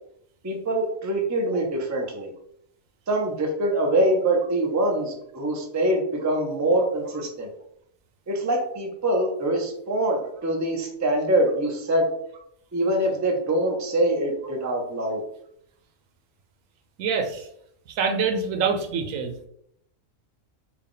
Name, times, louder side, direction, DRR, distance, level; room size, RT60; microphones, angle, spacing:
voice 1, 0.4-2.3 3.1-7.5 8.3-12.0 12.7-15.2, right 1 dB, 25° right, 1 dB, 0.4 m, -24 dB
voice 2, 17.0-17.5 18.0-19.3, right 5 dB, 85° right, 4 dB, 1.1 m, -25 dB
3.6 x 2.3 x 3.8 m, 0.71 s
omnidirectional pair, 1.3 m